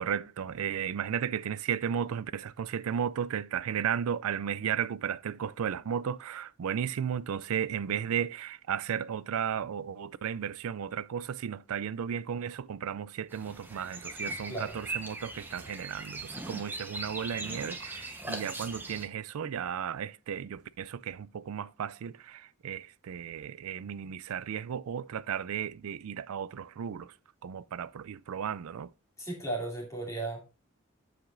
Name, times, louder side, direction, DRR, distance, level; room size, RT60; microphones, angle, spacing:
voice 1, 0.0-27.1 27.4-28.9, right 8 dB, 85° right, 0.4 m, -34 dB
sound 1, 13.3-19.1, right 2 dB, 10° right, 0.9 m, -40 dB
voice 2, 29.2-30.4, right 2 dB, 15° left, 2.5 m, -35 dB
13.0 x 5.0 x 2.5 m
head